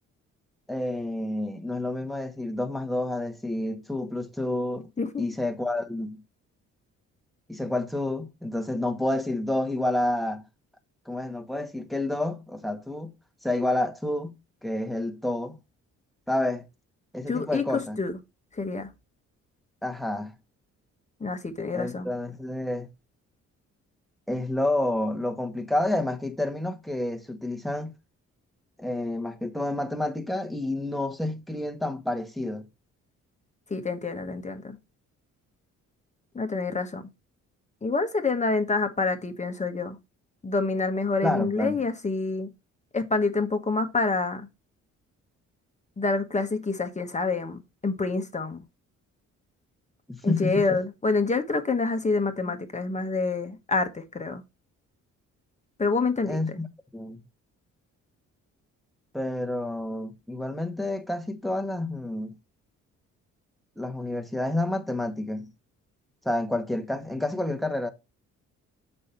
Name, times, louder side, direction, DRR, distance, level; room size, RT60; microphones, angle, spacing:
voice 1, 0.7-4.9 5.2-6.2 7.5-10.4 11.1-13.1 13.4-14.3 14.6-15.6 16.3-16.6 17.1-18.0 19.8-20.3 21.7-22.9 24.3-27.9 28.8-32.7 41.2-41.7 50.1-50.6 56.3-56.7 56.9-57.2 59.1-62.3 63.8-65.5 66.2-67.9, left 1 dB, ahead, 1.4 m, -29 dB
voice 2, 17.3-18.2 18.5-18.9 21.2-22.1 33.7-34.8 36.3-37.0 37.8-40.0 40.4-42.5 42.9-44.5 46.0-48.6 50.2-54.4 55.8-56.6, left 3 dB, 25° left, 1.3 m, -27 dB
6.4 x 5.5 x 4.3 m
cardioid pair, 90°, 30 cm